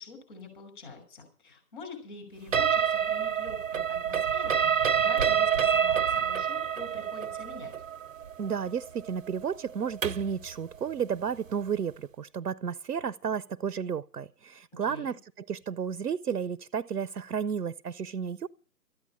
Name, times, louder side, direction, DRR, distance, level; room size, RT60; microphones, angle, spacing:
voice 1, 0.0-7.7 14.7-15.2, left 3 dB, 30° left, 6.0 m, -46 dB
sound 1, 2.5-10.4, right 8 dB, 55° right, 0.7 m, -27 dB
voice 2, 8.4-18.5, right 7 dB, 85° right, 0.8 m, -32 dB
14.0 x 9.1 x 8.8 m
figure-of-eight pair, 160°, 46 cm